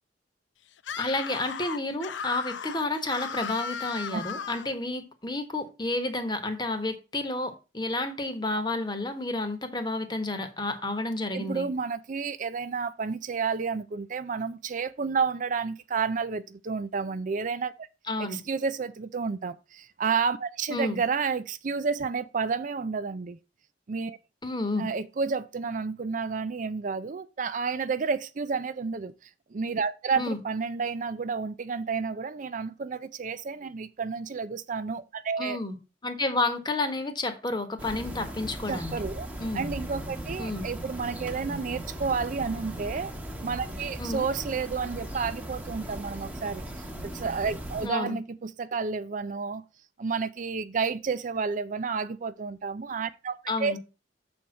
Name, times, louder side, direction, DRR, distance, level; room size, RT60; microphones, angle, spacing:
Screaming, 0.8-4.7, left 7 dB, 85° left, 0.6 m, -36 dB
voice 1, 1.0-11.7 18.1-18.4 20.7-21.0 24.4-24.9 30.2-30.4 35.4-35.7 36.0-38.9 39.4-39.7 40.4-40.7 44.0-44.3 47.8-48.1 53.5-53.8, left 2 dB, 25° left, 1.3 m, -30 dB
voice 2, 11.3-17.9 18.2-23.4 23.9-24.2 24.8-35.6 38.7-39.3 39.5-43.1 43.4-49.6 50.0-53.8, right 5 dB, 45° right, 0.4 m, -31 dB
sound 1, 37.8-47.9, right 1 dB, 10° right, 1.1 m, -38 dB
7.0 x 4.5 x 6.3 m
head